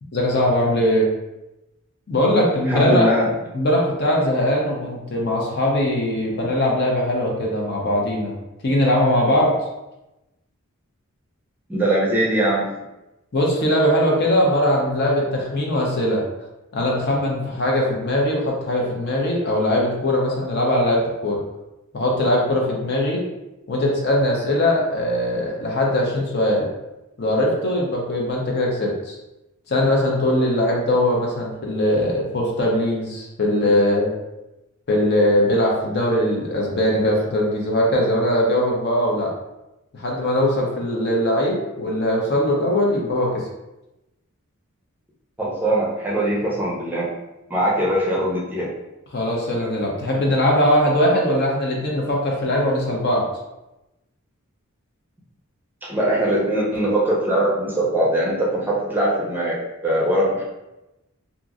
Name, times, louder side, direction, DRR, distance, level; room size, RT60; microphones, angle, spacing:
voice 1, 0.1-1.1 2.1-3.1 3.5-8.4 8.6-9.5 13.3-16.2 16.7-21.4 21.9-23.2 23.7-26.7 27.2-29.2 29.7-34.1 34.9-39.3 39.9-43.4 49.1-53.3, left 1 dB, 50° left, -2 dB, 0.6 m, -20 dB
voice 2, 2.7-3.3 11.7-12.7 45.4-47.1 47.5-48.7 55.9-59.6 59.8-60.5, right 1 dB, 10° right, -6 dB, 0.5 m, -21 dB
2.9 x 2.5 x 2.4 m, 0.97 s
head